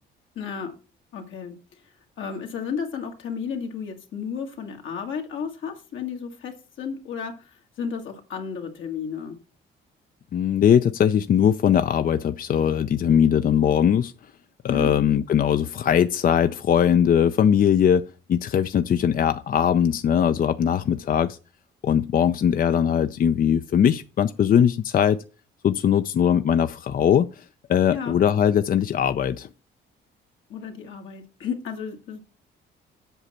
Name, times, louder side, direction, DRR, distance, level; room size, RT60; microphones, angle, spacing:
voice 1, 0.4-0.8 1.1-1.5 2.2-7.5 7.8-9.4 14.7-14.9 27.9-28.2 30.5-32.2, left 6 dB, 75° left, 1.9 m, -32 dB
voice 2, 10.3-14.1 14.6-18.0 18.3-21.4 21.8-25.2 25.6-29.5, left 8 dB, 45° left, 0.5 m, -20 dB
8.1 x 6.4 x 4.3 m
cardioid pair, 90°, 20 cm